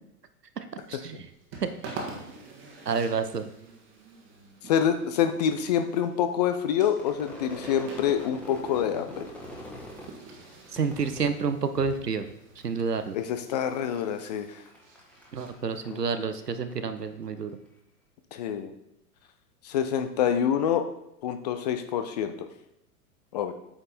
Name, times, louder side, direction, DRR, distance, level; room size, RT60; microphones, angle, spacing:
voice 1, 0.6-1.2 1.8-1.9 2.9-3.5 10.7-12.3 12.6-13.2 15.3-17.5, right 5 dB, 80° right, 9 dB, 1.0 m, -29 dB
sound 1, 0.8-15.9, right 3 dB, 25° right, 1.5 m, -47 dB
voice 2, 4.6-9.3 13.1-14.6 15.9-16.0 18.3-18.7 19.6-20.8 21.2-22.3 23.3-23.5, left 8 dB, 30° left, 9 dB, 0.5 m, -26 dB
Crowd / Fireworks, 6.9-12.3 12.6-13.2 13.5-17.1, equal, 5° left, 1.6 m, -44 dB
8.5 x 5.3 x 4.3 m, 0.82 s
figure-of-eight pair, 105°, 47 cm